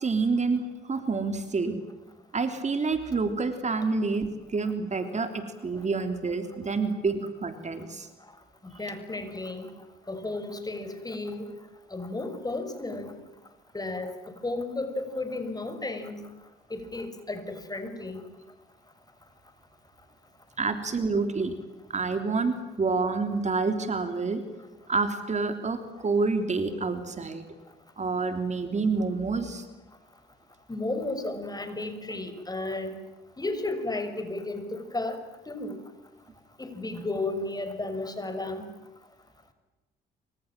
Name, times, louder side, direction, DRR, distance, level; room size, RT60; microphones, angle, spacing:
voice 1, 0.0-1.8 2.3-8.1 20.6-21.5 21.9-24.4 24.9-27.4 28.0-29.6, right 4 dB, 35° right, 8 dB, 3.4 m, -28 dB
voice 2, 8.8-9.7 10.1-11.5 11.9-13.2 13.7-14.1 14.4-16.2 16.7-18.3 30.7-32.9 33.4-35.8 36.6-38.6, left 2 dB, 20° left, 9 dB, 6.1 m, -33 dB
28.0 x 26.0 x 7.5 m, 1.1 s
cardioid pair, 90°, 20 cm